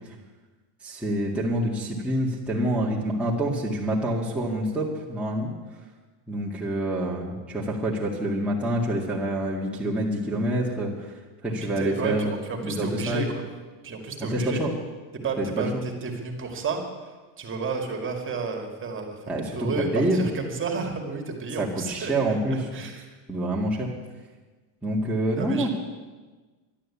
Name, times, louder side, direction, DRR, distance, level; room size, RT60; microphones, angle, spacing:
voice 1, 0.8-5.5 6.3-11.1 11.4-12.4 12.6-13.2 14.2-14.7 15.4-15.8 19.3-20.3 21.6-22.7 23.3-23.9 24.8-25.7, right 1 dB, 5° right, -5 dB, 2.0 m, -27 dB
voice 2, 11.6-13.4 13.8-14.6 15.2-16.8 17.4-22.1 22.7-23.1 25.3-25.7, right 4 dB, 25° right, 3 dB, 2.3 m, -31 dB
12.0 x 11.5 x 8.5 m, 1.3 s
cardioid pair, 140°, 45 cm